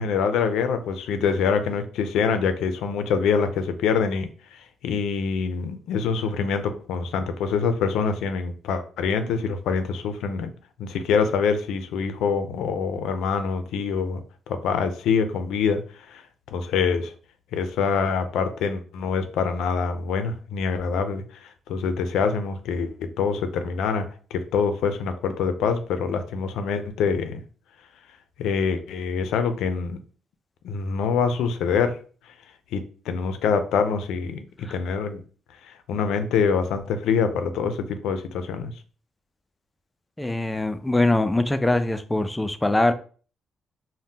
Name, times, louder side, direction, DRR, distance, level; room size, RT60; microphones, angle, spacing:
voice 1, 0.0-10.5 10.8-15.8 16.1-16.2 16.5-17.1 17.5-24.1 24.3-27.4 28.4-30.0 30.6-32.0 32.7-35.2 35.7-38.7, left 6 dB, 85° left, 9 dB, 0.4 m, -25 dB
voice 2, 40.2-42.9, left 2 dB, 10° left, 9 dB, 0.3 m, -22 dB
2.7 x 2.1 x 3.5 m, 0.40 s
cardioid pair, 90°, 0 cm